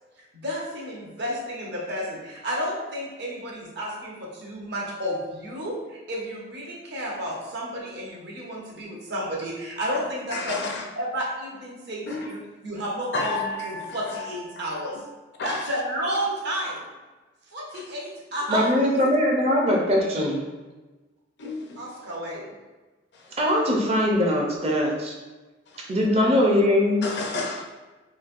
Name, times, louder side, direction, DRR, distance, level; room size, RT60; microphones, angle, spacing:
voice 1, 0.4-10.7 11.0-15.0 15.4-16.8 17.5-18.9 21.8-22.5, equal, 60° right, -3 dB, 0.8 m, -31 dB
voice 2, 10.3-10.8 12.1-12.2 13.1-14.3 14.8-15.0 15.4-15.6 21.4-21.8 27.0-27.7, left 3 dB, 60° left, 1 dB, 0.5 m, -31 dB
voice 3, 18.5-20.4 23.4-25.1 25.9-27.0, left 1 dB, 30° right, -1 dB, 0.5 m, -21 dB
3.1 x 2.6 x 2.5 m, 1.2 s
head